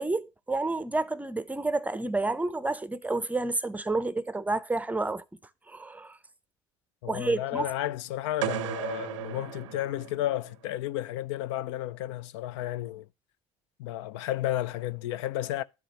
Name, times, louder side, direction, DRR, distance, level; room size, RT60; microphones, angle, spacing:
voice 1, 0.0-5.2 5.7-6.2 7.1-7.7, right 2 dB, 10° right, 0.6 m, -30 dB
voice 2, 7.0-13.1 13.8-15.6, left 13 dB, 70° left, 0.4 m, -32 dB
sound 1, 8.4-10.5, right 15 dB, 80° right, 0.5 m, -35 dB
12.0 x 5.0 x 2.9 m
hypercardioid pair, 70°, 16 cm